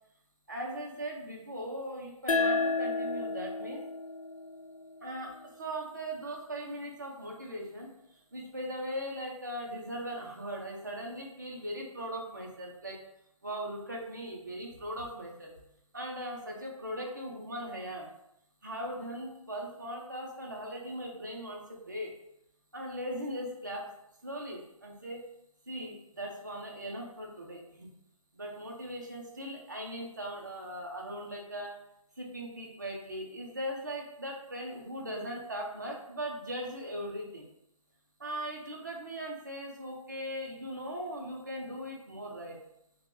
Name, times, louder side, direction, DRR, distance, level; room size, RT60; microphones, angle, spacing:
voice 1, 0.5-3.8 5.0-7.9 8.3-13.0 13.4-15.5 15.9-18.1 18.6-22.1 22.7-23.9 24.2-25.2 25.7-27.9 28.3-31.8 32.2-37.5 38.2-42.6, equal, 35° right, -1 dB, 0.5 m, -39 dB
sound 1, 2.3-5.5, left 3 dB, 75° left, 0.4 m, -32 dB
3.3 x 2.2 x 2.5 m, 0.79 s
figure-of-eight pair, 175°, 18 cm